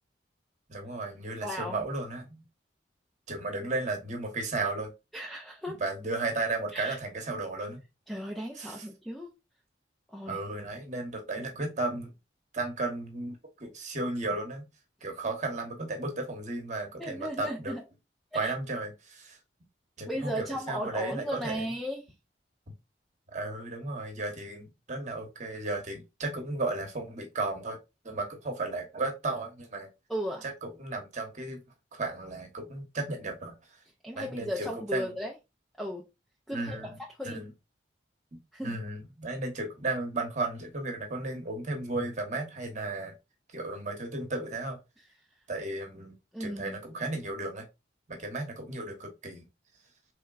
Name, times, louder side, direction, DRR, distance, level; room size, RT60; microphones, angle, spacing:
voice 1, 0.7-2.4 3.3-4.9 5.7-7.8 8.6-8.8 10.3-12.1 12.5-14.7 15.0-17.7 18.3-19.4 20.0-21.6 23.3-27.8 28.0-29.9 30.4-31.6 31.9-33.6 34.2-35.1 36.5-37.0 37.2-37.5 38.3-43.1 43.5-44.8 45.5-46.1 46.4-47.6 48.1-49.4, right 2 dB, 40° right, 1.1 m, -34 dB
voice 2, 1.4-1.8 5.1-5.8 6.7-7.0 8.1-9.3 10.1-10.4 17.0-17.8 18.3-18.5 20.1-22.0 30.1-30.4 34.0-35.3 35.8-36.0 36.5-36.8 37.2-37.4 38.5-38.8 46.3-46.8, equal, ahead, 0.5 m, -35 dB
4.3 x 3.3 x 2.4 m
head